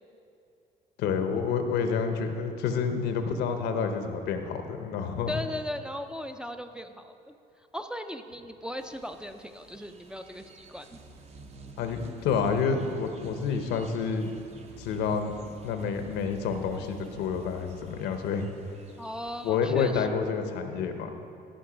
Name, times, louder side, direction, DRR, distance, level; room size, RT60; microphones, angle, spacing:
voice 1, 1.0-5.4 11.8-14.4 14.8-15.3 15.6-18.5 19.4-21.1, left 6 dB, 85° left, 6 dB, 0.8 m, -29 dB
voice 2, 5.3-7.3 7.7-11.0 19.0-20.1, left 1 dB, 5° right, 5 dB, 0.4 m, -37 dB
sound 1, 8.8-19.5, right 2 dB, 40° right, 0.7 m, -49 dB
13.0 x 5.3 x 5.0 m, 2.7 s
cardioid pair, 110°, 17 cm